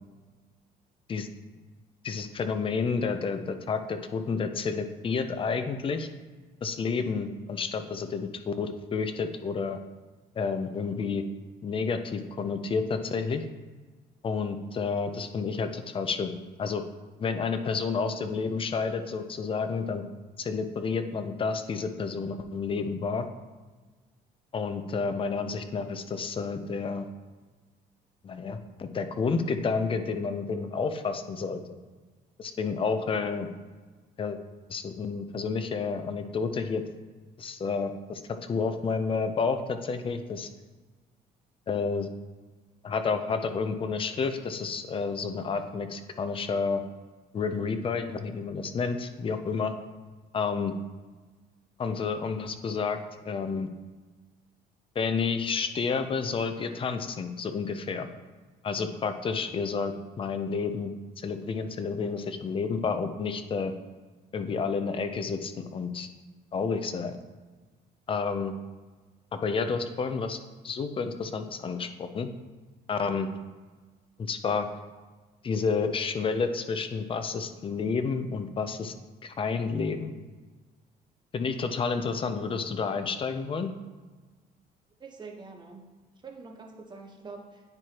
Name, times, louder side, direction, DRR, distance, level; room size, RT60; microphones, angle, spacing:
voice 1, 2.0-6.1 6.6-9.8 10.4-11.2 11.6-13.4 14.2-16.3 16.6-16.8 17.2-20.0 20.4-23.3 24.5-27.1 28.2-31.6 32.4-33.5 34.2-34.4 34.7-36.8 37.4-40.5 41.7-42.1 42.8-46.8 47.3-49.7 50.3-50.7 51.8-53.0 53.2-53.7 55.0-58.1 58.6-63.7 64.3-66.1 66.5-67.2 68.1-68.5 69.3-70.4 70.6-72.3 72.9-73.3 74.2-74.7 75.4-78.9 79.2-80.1 81.3-83.7, left 5 dB, 30° left, 8 dB, 0.6 m, -30 dB
voice 2, 85.0-85.9 86.2-87.6, right 4 dB, 25° right, 1 dB, 1.0 m, -45 dB
9.6 x 4.6 x 2.9 m, 1.3 s
cardioid pair, 110°, 17 cm